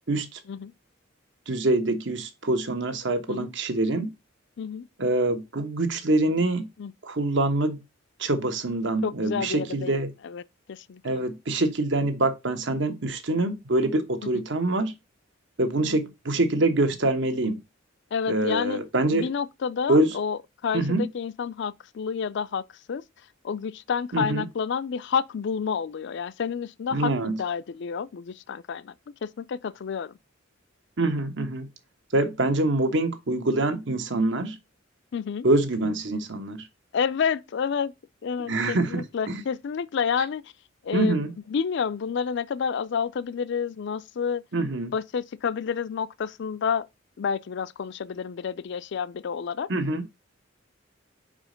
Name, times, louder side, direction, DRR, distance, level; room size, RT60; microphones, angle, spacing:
voice 1, 0.1-0.4 1.5-4.1 5.0-6.7 7.0-7.8 8.2-10.1 11.0-14.9 15.6-17.6 18.3-19.3 19.9-20.2 20.7-21.1 24.1-24.5 26.9-27.4 31.0-31.7 32.1-34.6 35.4-36.7 38.5-39.4 40.9-41.3 44.5-44.9 49.7-50.1, right 2 dB, 65° right, 1.2 m, -25 dB
voice 2, 9.0-10.0 10.2-10.4 10.7-11.2 14.3-14.4 18.1-18.8 19.1-22.6 22.9-23.0 23.4-28.9 29.2-30.1 35.1-35.4 36.9-37.9 38.2-40.4 40.8-44.4 44.9-46.9 47.2-49.7, left 6 dB, 60° left, 0.4 m, -29 dB
5.1 x 5.0 x 5.0 m
head